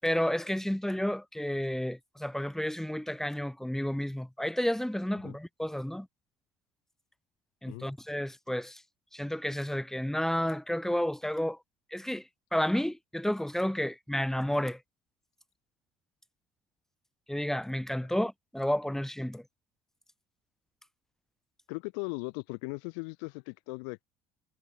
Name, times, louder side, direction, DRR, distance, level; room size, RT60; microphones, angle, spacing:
voice 1, 0.0-6.1 7.6-8.8 9.1-11.6 11.9-14.8 17.3-19.4, equal, 5° left, 7.6 m, -31 dB
voice 2, 21.7-24.0, left 37 dB, 80° left, 6.8 m, -38 dB
hypercardioid pair, 70°, 12 cm